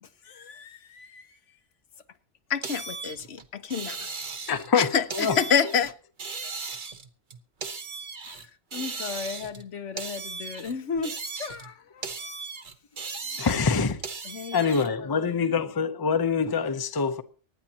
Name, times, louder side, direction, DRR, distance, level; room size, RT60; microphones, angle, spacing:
voice 1, 0.0-1.6 8.3-12.2 14.2-15.6, left 5 dB, 80° left, 1.3 m, -37 dB
voice 2, 2.5-4.0 4.7-5.9, left 7 dB, 65° left, 1.0 m, -26 dB
sound 1, 2.6-4.7 5.1-5.9 6.2-8.5 8.7-9.7 10.0-11.7 12.0-14.9, right 4 dB, 45° right, 1.1 m, -37 dB
voice 3, 4.5-5.4 13.4-14.0 14.5-17.2, left 5 dB, 25° left, 0.7 m, -25 dB
24.5 x 10.0 x 2.9 m
omnidirectional pair, 1.2 m